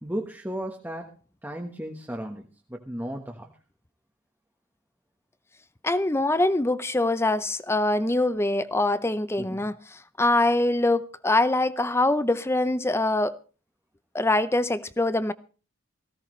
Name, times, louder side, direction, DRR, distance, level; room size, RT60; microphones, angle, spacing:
voice 1, 0.0-1.1 1.4-3.5 9.4-9.7, right 1 dB, 10° right, 1.3 m, -35 dB
voice 2, 5.8-13.4 14.1-15.3, left 2 dB, 10° left, 0.6 m, -24 dB
18.5 x 16.0 x 3.2 m
head